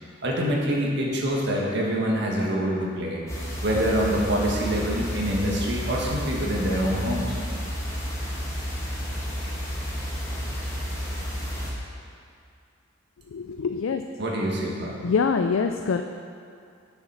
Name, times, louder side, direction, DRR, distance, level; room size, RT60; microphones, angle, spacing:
voice 1, 0.2-3.2 3.6-7.4 14.2-15.0, equal, 60° right, -3 dB, 1.6 m, -25 dB
sound 1, 3.3-11.7, equal, 15° left, 1.7 m, -31 dB
voice 2, 13.3-14.0 15.0-16.0, left 5 dB, 75° left, 6 dB, 0.4 m, -24 dB
8.2 x 7.0 x 5.7 m, 2.4 s
head